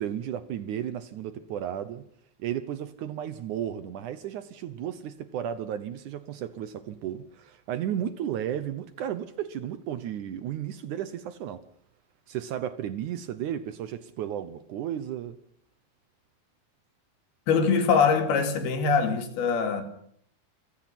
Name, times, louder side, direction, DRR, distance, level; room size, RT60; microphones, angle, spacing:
voice 1, 0.0-2.0 2.4-11.6 12.3-15.4, right 10 dB, 70° right, 2.1 m, -34 dB
voice 2, 17.5-19.8, left 5 dB, 85° left, 4.4 m, -23 dB
27.5 x 16.5 x 6.0 m
omnidirectional pair, 4.3 m